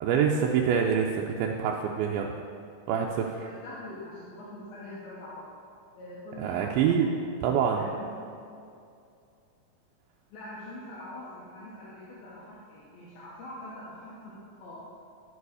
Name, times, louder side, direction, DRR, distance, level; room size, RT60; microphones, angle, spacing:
voice 1, 0.0-2.3 2.9-3.3 6.4-7.1 7.4-7.9, right 7 dB, 85° right, 0 dB, 2.4 m, -25 dB
voice 2, 3.0-5.5 6.0-7.1 7.7-8.2 10.3-14.4 14.6-14.9, left 1 dB, 85° left, -8 dB, 3.0 m, -44 dB
12.0 x 4.8 x 4.8 m, 2.5 s
omnidirectional pair, 4.1 m